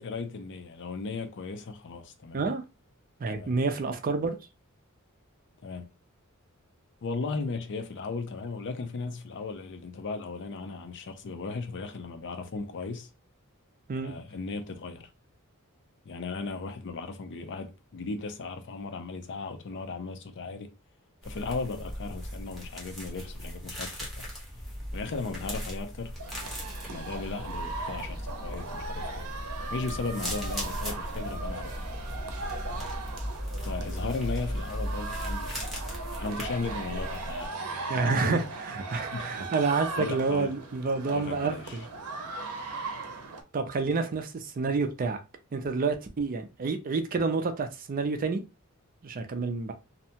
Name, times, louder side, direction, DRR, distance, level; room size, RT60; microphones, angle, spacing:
voice 1, 0.0-2.4 3.3-3.5 5.6-5.9 7.0-13.1 14.0-15.1 16.1-20.7 21.2-24.3 24.9-26.6 26.9-29.3 29.7-31.8 32.7-32.9 33.6-35.6 36.2-38.5 39.1-39.3 40.0-40.6 41.1-41.8, left 4 dB, 55° left, 0.5 m, -36 dB
voice 2, 3.2-4.4 13.9-14.1 37.9-41.8 43.5-45.2 45.5-48.4 49.0-49.7, right 4 dB, 40° right, 0.4 m, -29 dB
sound 1, 21.2-37.5, equal, ahead, 1.0 m, -37 dB
sound 2, 26.2-43.4, right 3 dB, 85° right, 0.6 m, -38 dB
2.7 x 2.2 x 2.7 m
head